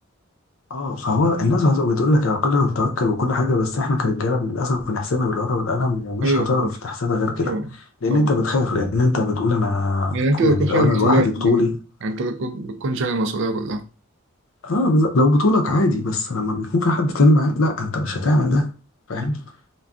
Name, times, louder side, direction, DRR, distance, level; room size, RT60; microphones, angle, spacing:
voice 1, 0.7-7.5 8.0-11.8 14.6-18.7 19.1-19.5, left 2 dB, 70° left, 0.5 m, -20 dB
voice 2, 6.2-6.7 7.4-7.7 8.1-8.3 10.1-11.6 12.0-13.8, right 1 dB, 60° right, 0.4 m, -22 dB
2.4 x 2.2 x 3.6 m
head